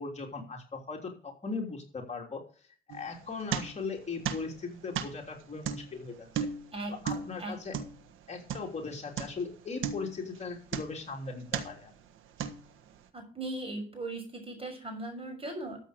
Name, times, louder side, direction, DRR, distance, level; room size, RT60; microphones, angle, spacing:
voice 1, 0.0-6.5 6.9-7.8 8.3-11.9, left 4 dB, 35° left, 1 dB, 3.3 m, -39 dB
sound 1, 2.9-4.0 4.2-8.8 9.2-9.5 9.8-11.1 11.5-11.9 12.4-13.0, right 7 dB, 85° right, 1.5 m, -36 dB
voice 2, 6.7-7.8 13.1-15.8, right 2 dB, 30° right, 5 dB, 6.6 m, -39 dB
13.5 x 7.8 x 5.2 m, 0.43 s
cardioid pair, 90°, 20 cm